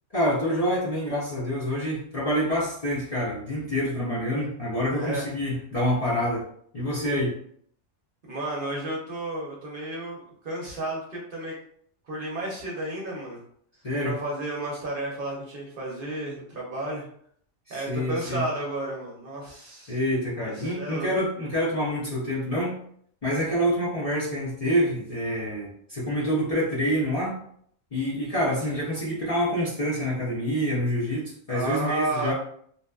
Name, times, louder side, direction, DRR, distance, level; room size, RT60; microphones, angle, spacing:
voice 1, 0.1-6.4 6.7-7.4 13.8-14.1 17.7-18.4 19.9-22.8 23.2-27.4 27.9-32.3, equal, 40° left, -8 dB, 0.5 m, -27 dB
voice 2, 4.9-5.3 8.3-11.5 12.1-13.4 14.0-17.0 17.7-20.0 20.4-21.1 31.5-32.3, right 2 dB, 55° right, -3 dB, 0.7 m, -32 dB
2.8 x 2.2 x 2.2 m, 0.63 s
omnidirectional pair, 1.3 m